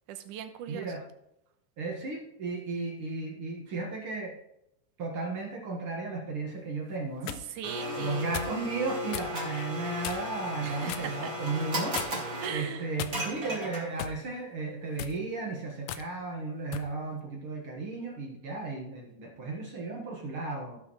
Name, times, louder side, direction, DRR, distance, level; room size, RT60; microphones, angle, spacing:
voice 1, 0.1-0.9 7.5-8.3 10.6-11.3 12.4-12.9, right 9 dB, 80° right, 9 dB, 2.3 m, -39 dB
voice 2, 0.7-1.0 1.8-4.3 5.0-7.4 8.0-12.0 12.5-20.8, right 3 dB, 50° right, -1 dB, 2.0 m, -34 dB
sound 1, 6.9-7.4 8.3-8.6 9.1-9.3 10.0-10.4 10.9-11.1 11.9-12.4 13.0-13.5 14.0-14.2 14.9-15.2 15.9-16.1 16.7-16.9, left 11 dB, 90° left, 1.5 m, -37 dB
Domestic sounds home sounds, 7.6-14.1, equal, 30° right, 2.0 m, -36 dB
17.0 x 5.8 x 3.1 m, 0.80 s
omnidirectional pair, 3.7 m